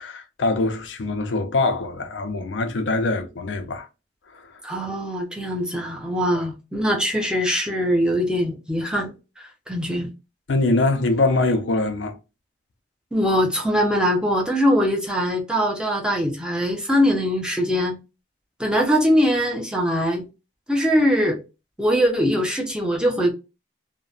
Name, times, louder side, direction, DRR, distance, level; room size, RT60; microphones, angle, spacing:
voice 1, 0.0-3.9 4.3-4.5 10.5-12.2, left 2 dB, 85° left, 0.5 m, -23 dB
voice 2, 4.6-9.1 9.4-10.1 13.1-18.0 18.6-20.3 20.7-21.4 21.8-23.3, equal, 5° right, 0.6 m, -22 dB
2.8 x 2.1 x 2.3 m
head